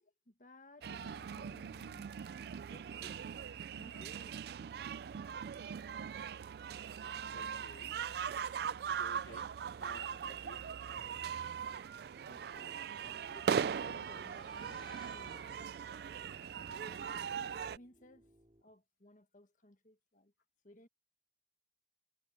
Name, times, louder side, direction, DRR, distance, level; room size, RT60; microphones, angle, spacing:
voice 1, 0.0-2.1 2.7-4.4 12.3-15.4 16.7-18.3 18.6-20.3 20.6-20.9, left 1 dB, 45° left, 1.5 m, -60 dB
sound 1, 0.8-17.8, right 7 dB, 55° right, 0.3 m, -40 dB
voice 2, 0.9-1.3 7.3-8.0 8.9-10.7 12.9-13.0, left 2 dB, 80° left, 3.4 m, -56 dB
sound 2, 8.3-13.3 13.8-16.0, left 3 dB, 25° left, 8.0 m, -64 dB
sound 3, 8.6-18.6, equal, 30° right, 2.6 m, -67 dB
head